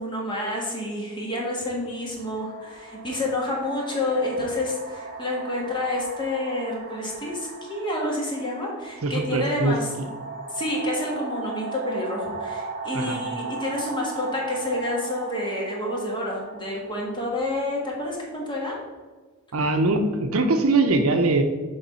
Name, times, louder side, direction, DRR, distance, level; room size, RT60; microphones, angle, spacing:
voice 1, 0.0-9.9 10.5-18.8, left 1 dB, 20° left, -2 dB, 1.5 m, -29 dB
sound 1, 0.8-0.9 1.8-18.5, right 4 dB, 45° right, 0.9 m, -38 dB
voice 2, 9.0-10.1 12.9-13.2 19.5-21.4, right 2 dB, 75° right, 6 dB, 0.7 m, -22 dB
6.9 x 3.5 x 5.6 m, 1.3 s
head